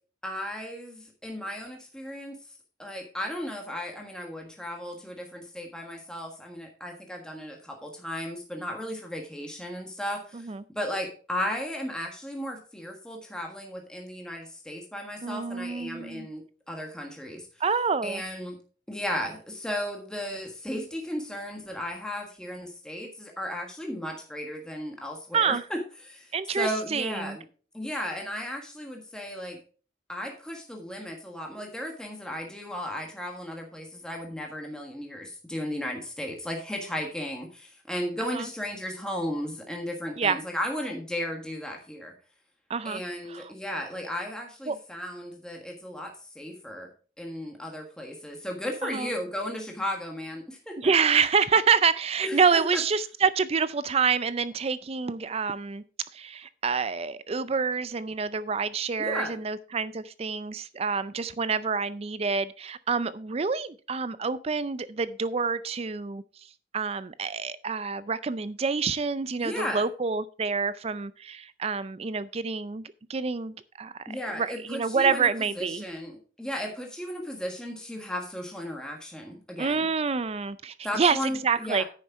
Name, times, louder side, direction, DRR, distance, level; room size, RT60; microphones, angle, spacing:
voice 1, 0.2-2.4 2.8-17.5 18.0-18.6 18.9-27.4 27.7-29.6 30.1-42.1 42.8-46.9 47.2-50.9 52.2-52.8 59.0-59.4 69.4-69.8 74.1-75.3 75.6-79.9 80.8-81.8, equal, 5° left, 0 dB, 1.5 m, -35 dB
voice 2, 15.2-16.3 17.6-18.2 25.3-25.6 26.3-27.4 38.3-38.5 40.2-40.4 42.7-43.0 43.3-43.4 44.7-44.8 48.8-49.1 50.8-55.8 56.1-66.2 66.7-72.8 73.1-73.9 74.4-75.9 79.6-81.8, right 5 dB, 30° right, 15 dB, 0.4 m, -27 dB
9.7 x 6.5 x 4.6 m, 0.38 s
head